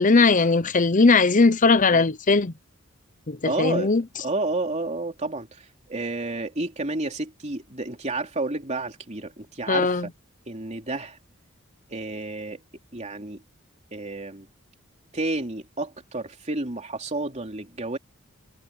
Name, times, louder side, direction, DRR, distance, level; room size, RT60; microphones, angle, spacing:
voice 1, 0.0-2.5 3.3-4.0 9.7-10.1, left 3 dB, 40° left, 0.8 m, -19 dB
voice 2, 3.4-3.9 4.2-10.1 10.5-11.2 11.9-12.6 12.9-13.4 13.9-14.5 15.1-18.0, right 2 dB, 35° right, 3.3 m, -30 dB
head